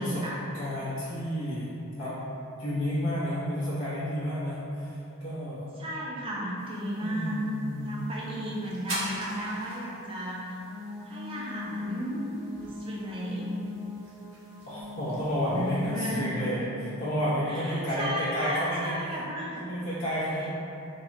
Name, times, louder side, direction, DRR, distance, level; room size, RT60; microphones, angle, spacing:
voice 1, 0.0-0.4 5.7-7.4 7.8-10.6 11.0-12.4 12.6-13.5 15.2-16.2 17.5-19.6, right 1 dB, 25° right, -5 dB, 0.4 m, -34 dB
voice 2, 0.5-2.2 2.6-5.7 7.0-8.0 14.7-19.0 19.6-20.5, equal, 60° left, -10 dB, 0.7 m, -31 dB
sound 1, 6.6-16.1, right 1 dB, 60° right, 0.7 m, -44 dB
sound 2, 10.7-16.6, left 2 dB, ahead, 0.7 m, -39 dB
3.5 x 2.1 x 2.5 m, 2.8 s
head